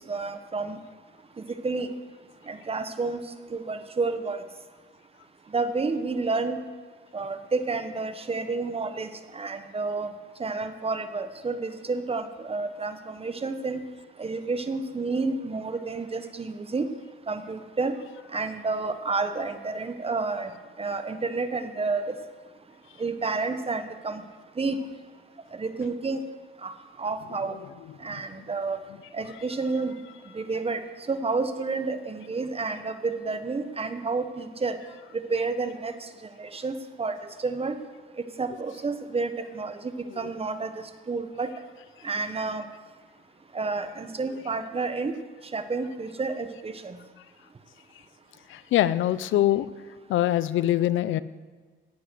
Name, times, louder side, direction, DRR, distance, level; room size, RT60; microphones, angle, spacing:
voice 1, 0.1-0.8 1.6-1.9 2.5-3.2 3.5-4.4 5.5-6.6 7.1-10.1 10.4-13.8 14.2-16.9 17.3-17.9 18.3-20.5 20.8-22.2 23.0-24.2 24.6-24.8 25.6-26.2 26.6-26.7 27.0-27.6 28.0-28.8 29.1-29.9 30.3-30.8 31.1-34.8 35.1-35.9 36.4-37.2 37.4-37.8 38.4-40.7 41.1-41.5 42.0-42.7 43.5-45.1 45.5-47.0, right 3 dB, 30° right, 9 dB, 1.2 m, -30 dB
voice 2, 48.5-49.7 50.1-51.2, left 13 dB, 80° left, 16 dB, 0.6 m, -24 dB
18.0 x 7.9 x 6.4 m, 1.4 s
cardioid pair, 90°, 20 cm